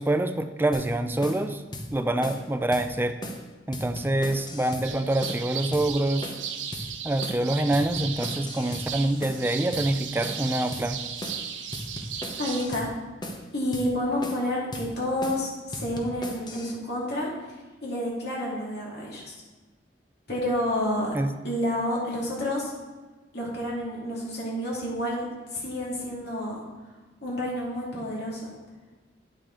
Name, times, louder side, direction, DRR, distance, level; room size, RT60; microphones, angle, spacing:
voice 1, 0.0-1.6 1.9-3.2 3.7-6.3 7.0-11.0 21.1-21.3, right 1 dB, 10° right, 8 dB, 0.4 m, -26 dB
sound 1, 0.7-0.9 1.2-1.4 1.7-1.9 2.2-2.4 2.7-2.9 3.2-3.4 3.7-4.9 5.2-5.4 5.7-5.9 6.2-6.5 6.7-6.9 7.2-7.4 7.7-8.9 9.2-9.4 9.7-9.9 10.2-10.5 10.7-10.9 11.2-11.4 11.7-12.9 13.2-13.4 13.7-13.9 14.2-14.5 14.7-14.9 15.2-15.4 15.7-16.7, left 1 dB, 25° left, 0.8 m, -37 dB
sound 2, 4.8-12.7, right 8 dB, 85° right, 0.7 m, -36 dB
voice 2, 12.4-12.9 13.5-17.3 17.8-19.3 20.3-21.1 21.4-22.7 23.3-25.3 25.5-26.6 27.2-28.5, left 1 dB, 60° left, -4 dB, 2.5 m, -29 dB
8.9 x 6.5 x 3.8 m, 1.3 s
head